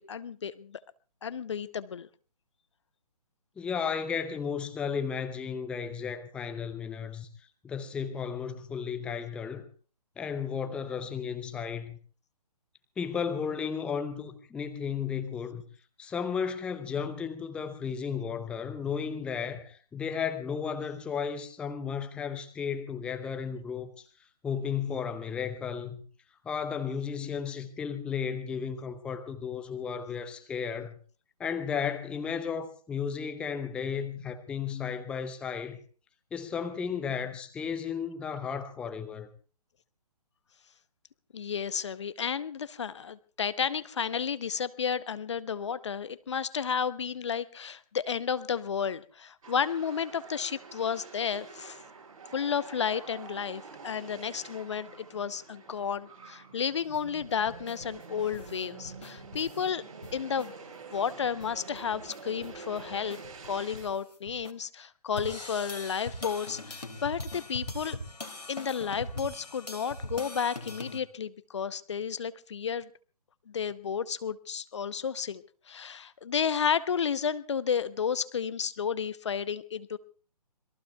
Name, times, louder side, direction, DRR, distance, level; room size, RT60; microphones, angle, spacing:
voice 1, 0.1-0.8 1.2-2.1 41.3-51.8 52.3-59.8 60.1-60.5 60.9-63.2 63.4-68.0 68.5-72.9 73.5-80.0, left 7 dB, 45° left, 0.8 m, -32 dB
voice 2, 3.6-7.3 7.6-9.7 10.2-12.0 13.0-15.6 16.0-23.9 24.4-26.0 26.4-31.0 31.4-35.8 36.3-39.3, left 6 dB, 5° left, 0.8 m, -34 dB
sound 1, 49.4-63.9, right 5 dB, 55° right, 6.9 m, -47 dB
sound 2, 56.8-59.7 60.0-60.5 60.9-61.0 61.2-64.5 65.1-71.0, left 1 dB, 75° left, 2.7 m, -42 dB
27.0 x 22.0 x 2.3 m
figure-of-eight pair, 135°, 21 cm